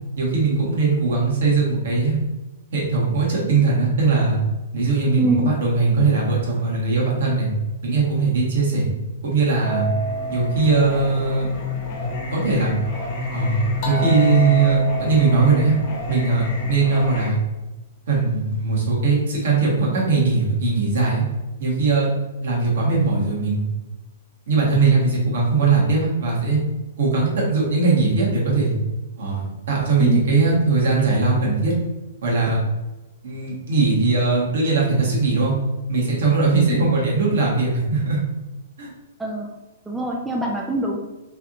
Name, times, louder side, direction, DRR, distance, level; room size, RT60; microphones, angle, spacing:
voice 1, 0.2-2.2 2.7-4.4 4.7-7.5 7.8-8.9 9.2-9.9 10.3-11.5 12.3-12.8 13.3-13.6 13.8-15.8 16.1-17.4 18.1-21.2 21.6-22.1 22.4-23.7 24.5-26.6 27.0-28.7 29.2-31.7 32.2-32.6 33.2-35.5 35.9-38.2 38.8-38.9, right 4 dB, 65° right, -4 dB, 1.3 m, -20 dB
voice 2, 5.2-5.5 30.0-30.4 36.7-36.8 39.2-39.5 39.9-41.0, right 1 dB, 10° right, -2 dB, 0.4 m, -24 dB
Singing, 9.6-17.3, left 2 dB, 45° left, 1.1 m, -27 dB
3.3 x 2.6 x 2.5 m, 1.1 s
hypercardioid pair, 125°, 0 cm